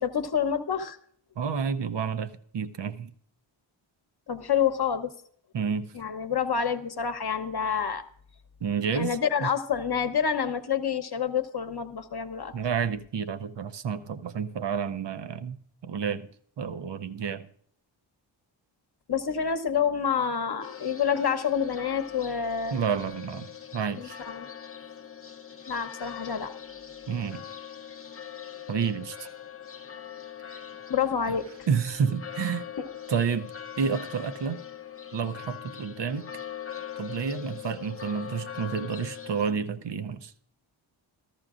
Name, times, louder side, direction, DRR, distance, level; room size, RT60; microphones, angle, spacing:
voice 1, 0.0-1.0 4.3-5.1 5.9-8.0 8.9-12.5 19.1-22.8 24.0-24.5 25.7-26.5 30.9-31.4 32.8-32.9, left 7 dB, 50° left, 1.0 m, -28 dB
voice 2, 1.4-3.1 5.5-5.9 8.6-9.5 12.5-16.3 16.6-17.5 22.7-24.2 27.1-27.5 28.7-29.3 30.5-30.6 31.3-31.4 31.7-32.7 33.1-34.6 35.1-36.3 37.0-40.3, right 6 dB, 60° right, 0.7 m, -30 dB
sound 1, 20.6-39.5, left 9 dB, 25° left, 0.8 m, -42 dB
14.0 x 13.5 x 2.5 m
cardioid pair, 70°, 49 cm